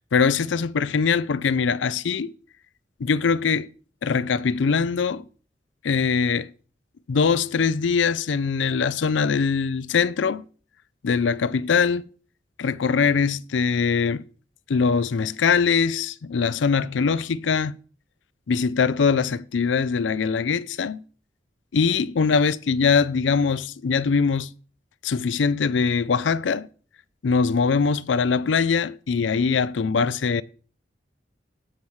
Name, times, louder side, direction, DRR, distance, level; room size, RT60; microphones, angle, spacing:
voice 1, 0.1-2.4 3.0-3.7 4.0-5.3 5.8-6.5 7.1-10.4 11.0-12.1 12.6-14.2 14.7-17.8 18.5-21.0 21.7-24.5 25.0-26.7 27.2-30.4, left 5 dB, 90° left, 0.5 m, -22 dB
18.5 x 7.0 x 3.2 m
head